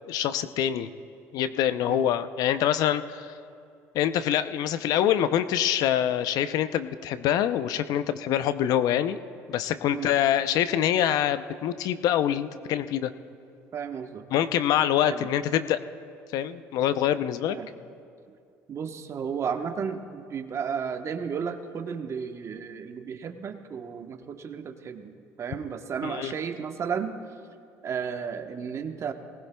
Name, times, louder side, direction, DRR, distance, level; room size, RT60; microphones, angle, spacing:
voice 1, 0.1-0.9 1.3-3.3 3.9-9.2 9.5-13.1 14.3-15.8 16.3-17.6 26.0-26.3, left 10 dB, 65° left, 12 dB, 0.6 m, -25 dB
voice 2, 13.7-14.2 15.0-15.3 17.5-17.7 18.7-25.1 25.4-27.1 27.8-29.1, right 6 dB, 45° right, 6 dB, 1.1 m, -33 dB
20.5 x 19.0 x 2.3 m, 2.4 s
supercardioid pair, 75°, 7 cm